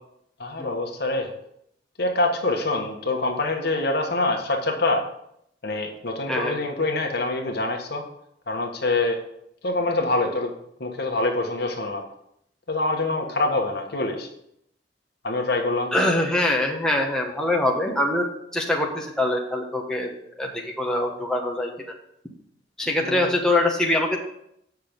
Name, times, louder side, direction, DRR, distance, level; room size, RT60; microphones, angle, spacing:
voice 1, 0.4-1.3 2.0-5.0 5.6-8.0 8.5-9.2 9.6-10.5 10.8-12.0 12.7-14.3 15.2-15.9 23.0-23.3, left 2 dB, 60° left, 3 dB, 1.3 m, -25 dB
voice 2, 6.3-6.6 15.9-18.3 18.5-20.1 20.4-21.7 22.8-24.2, left 1 dB, 5° left, -1 dB, 1.0 m, -23 dB
7.8 x 5.9 x 5.1 m, 0.75 s
head